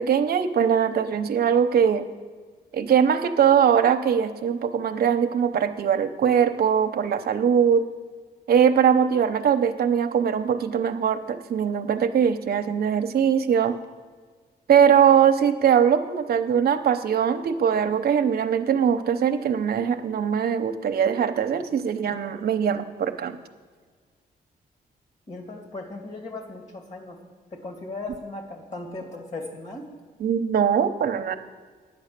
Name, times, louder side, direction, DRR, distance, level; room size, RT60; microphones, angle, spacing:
voice 1, 0.0-2.1 2.7-7.8 8.5-13.8 14.7-23.4 30.2-31.3, right 8 dB, 70° right, 7 dB, 0.8 m, -21 dB
voice 2, 25.3-27.2 27.5-29.9, left 2 dB, 45° left, 2 dB, 2.6 m, -37 dB
9.5 x 9.2 x 6.7 m, 1.5 s
cardioid pair, 95°, 17 cm